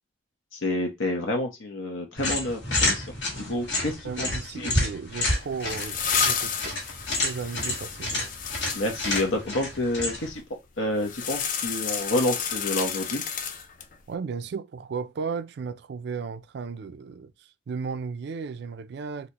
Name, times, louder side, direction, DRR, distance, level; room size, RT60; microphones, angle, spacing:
voice 1, 0.5-3.1 3.3-4.3 4.6-4.7 8.7-10.4 10.8-13.2, left 1 dB, 80° left, 0.8 m, -28 dB
sound 1, 2.2-10.4, left 2 dB, 65° left, 1.4 m, -29 dB
voice 2, 4.0-6.7 7.2-8.3 14.1-17.3 17.7-19.3, right 5 dB, 55° right, 0.3 m, -34 dB
sound 2, 5.3-9.3 11.0-13.9, left 7 dB, 40° left, 0.4 m, -31 dB
3.9 x 2.1 x 2.9 m
head